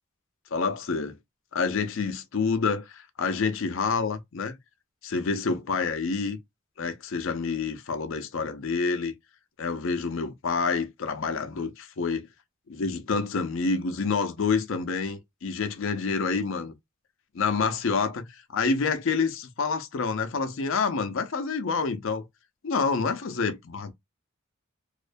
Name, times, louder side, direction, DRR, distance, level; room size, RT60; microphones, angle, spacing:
voice 1, 0.5-1.2 1.5-4.6 5.0-6.4 6.8-9.1 9.6-12.3 12.7-16.7 17.3-22.3 22.6-23.9, left 4 dB, 65° left, 0.5 m, -28 dB
2.4 x 2.1 x 2.5 m
head